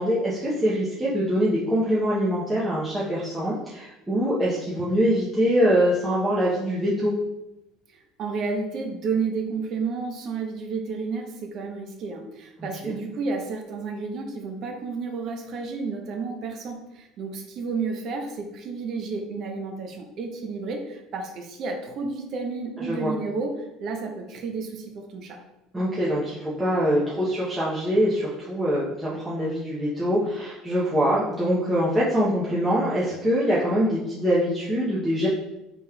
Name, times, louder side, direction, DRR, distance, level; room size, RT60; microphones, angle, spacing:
voice 1, 0.0-7.1 12.6-13.0 22.8-23.1 25.7-35.3, equal, 10° right, -9 dB, 0.7 m, -24 dB
voice 2, 8.2-25.4, right 4 dB, 50° right, 3 dB, 0.7 m, -31 dB
4.0 x 3.5 x 2.3 m, 0.94 s
cardioid pair, 130°, 0 cm